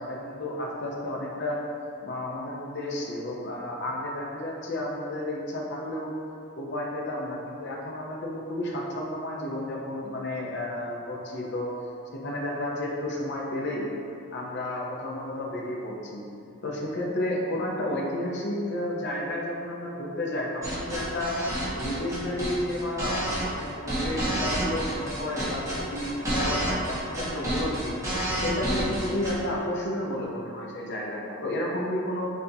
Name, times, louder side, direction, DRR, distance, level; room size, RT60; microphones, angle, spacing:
voice 1, 0.0-1.6 2.0-6.1 6.6-11.7 12.1-13.9 14.3-16.2 16.6-21.5 21.7-28.0 28.4-32.3, left 1 dB, 55° left, -2 dB, 0.7 m, -32 dB
sound 1, 20.6-29.4, right 1 dB, 15° right, 0.8 m, -29 dB
6.5 x 2.7 x 2.7 m, 2.6 s
head